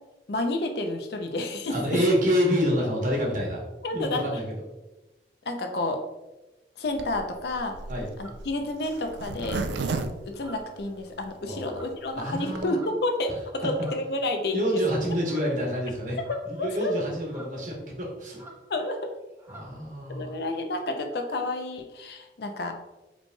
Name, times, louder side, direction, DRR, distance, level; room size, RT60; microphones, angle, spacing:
voice 1, 0.3-1.7 3.8-4.3 5.5-6.0 6.8-7.8 8.2-9.6 10.2-14.8 16.6-16.9 18.7-19.0 20.1-22.9, left 2 dB, 65° left, 5 dB, 0.5 m, -30 dB
voice 2, 1.7-3.6 3.9-4.4 7.9-8.1 11.4-11.7 12.1-12.8 14.5-16.2 16.5-18.4 19.5-20.3, equal, 45° right, -2 dB, 1.1 m, -27 dB
Zipper (clothing), 6.9-11.3 11.7-11.8 12.0-12.1 12.3-12.7, right 3 dB, 80° right, 0.4 m, -33 dB
sound 1, 8.2-8.5 9.3-9.7 10.3-10.9 11.6-12.1 12.7-13.1 13.7-14.2 15.2-15.6 16.2-16.7 17.2-17.6 18.3-18.7 18.9-19.1 19.4-19.7, right 1 dB, 15° right, 0.5 m, -49 dB
5.1 x 3.2 x 2.2 m, 1.1 s
head